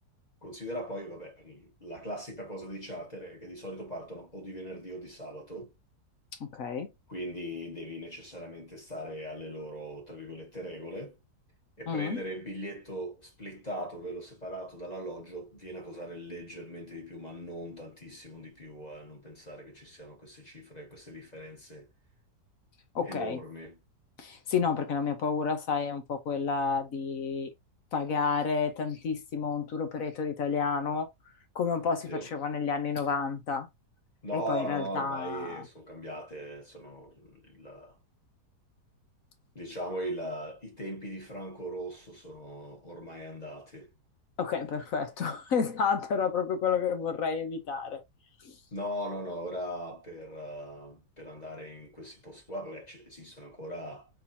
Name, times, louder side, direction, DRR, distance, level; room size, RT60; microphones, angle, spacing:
voice 1, 0.4-5.7 7.1-11.2 11.8-21.9 23.0-23.8 32.1-32.3 34.2-38.0 39.5-43.9 48.7-54.1, equal, 25° left, 1.6 m, -40 dB
voice 2, 6.4-6.9 11.9-12.2 22.9-23.4 24.2-27.5 27.9-31.1 31.5-33.7 34.3-35.6 44.4-48.0 48.4-48.6, left 5 dB, 60° left, 1.3 m, -30 dB
4.3 x 4.2 x 2.7 m
omnidirectional pair, 1.8 m